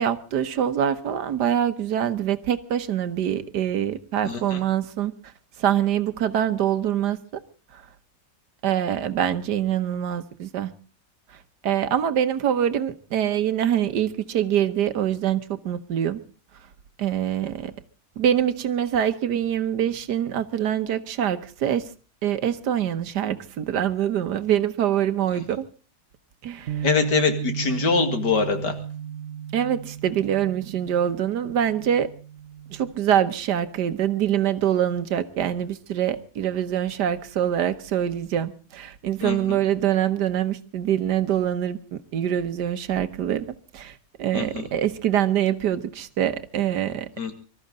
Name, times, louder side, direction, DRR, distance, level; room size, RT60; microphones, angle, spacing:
voice 1, 0.0-5.1 5.6-7.4 7.7-7.8 8.6-10.7 11.6-16.2 17.0-17.7 18.2-21.9 22.2-25.6 26.4-26.8 29.5-32.1 32.7-47.1, right 10 dB, 80° right, 1.6 m, -24 dB
voice 2, 4.2-4.6 26.8-28.8 39.2-39.6 44.3-44.7 47.2-47.3, left 5 dB, 85° left, 2.7 m, -24 dB
Bass guitar, 26.7-32.9, right 9 dB, 50° right, 1.2 m, -34 dB
24.5 x 13.5 x 3.8 m
omnidirectional pair, 1.8 m